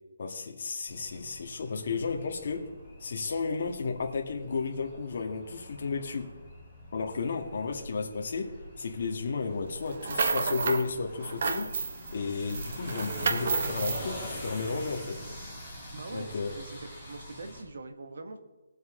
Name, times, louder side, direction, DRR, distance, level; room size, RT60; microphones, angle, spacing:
voice 1, 0.2-2.7 3.0-6.3 6.9-11.8 12.1-15.2 16.1-16.5, left 4 dB, 50° left, 1.9 m, -33 dB
sound 1, 0.9-17.6, equal, 10° right, 3.4 m, -44 dB
sound 2, 9.9-10.9 11.2-12.1 12.5-14.0, right 4 dB, 45° right, 1.0 m, -30 dB
voice 2, 15.9-16.8 17.1-18.4, right 2 dB, 65° right, 1.8 m, -42 dB
20.0 x 7.8 x 3.8 m
hypercardioid pair, 170°, 0 cm